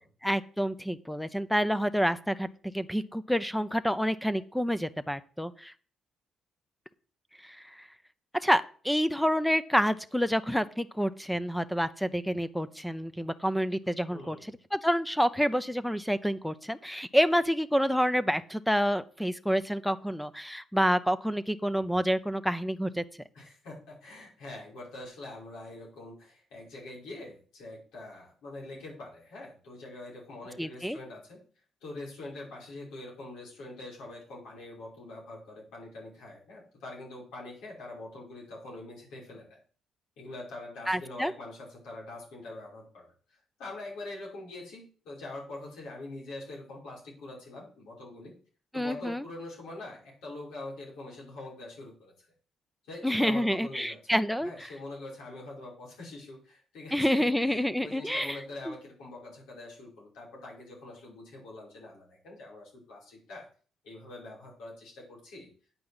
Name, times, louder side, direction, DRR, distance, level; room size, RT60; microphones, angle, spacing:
voice 1, 0.2-2.5 2.7-5.7 7.4-7.9 8.3-14.4 14.7-23.0 30.6-31.0 40.9-41.3 48.7-49.2 53.0-54.7 56.9-58.4 58.7-58.8, equal, ahead, 14 dB, 0.6 m, -28 dB
voice 2, 14.1-14.6 23.3-31.4 31.8-39.6 40.2-48.3 48.7-52.3 52.8-63.5 63.8-65.5, left 2 dB, 90° left, -4 dB, 5.8 m, -44 dB
8.9 x 5.5 x 8.0 m, 0.42 s
cardioid pair, 90°, 0 cm